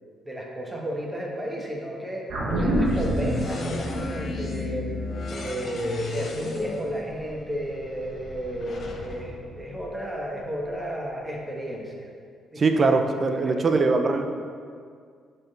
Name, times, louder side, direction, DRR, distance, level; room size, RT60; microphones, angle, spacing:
voice 1, 0.2-2.3 2.6-4.9 5.3-12.1 12.5-12.6 13.4-13.8, equal, 15° right, -2 dB, 1.3 m, -32 dB
sound 1, 2.3-6.9 7.2-7.3, right 1 dB, 70° right, 1.5 m, -29 dB
sound 2, 2.5-10.4, left 3 dB, 55° left, 0.8 m, -35 dB
voice 2, 12.6-14.3, right 3 dB, 40° right, 6 dB, 0.6 m, -22 dB
9.6 x 4.5 x 3.3 m, 2.1 s
cardioid pair, 90°, 0 cm